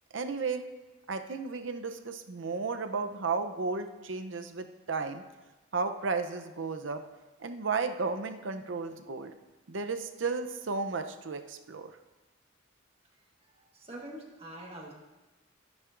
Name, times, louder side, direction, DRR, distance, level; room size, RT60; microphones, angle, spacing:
voice 1, 0.1-0.7 1.1-5.2 5.7-7.0 7.4-9.3 9.7-11.9, right 4 dB, 70° right, 8 dB, 0.6 m, -33 dB
voice 2, 13.1-14.9, right 1 dB, 30° right, 0 dB, 1.4 m, -46 dB
13.0 x 10.5 x 2.5 m, 1.1 s
head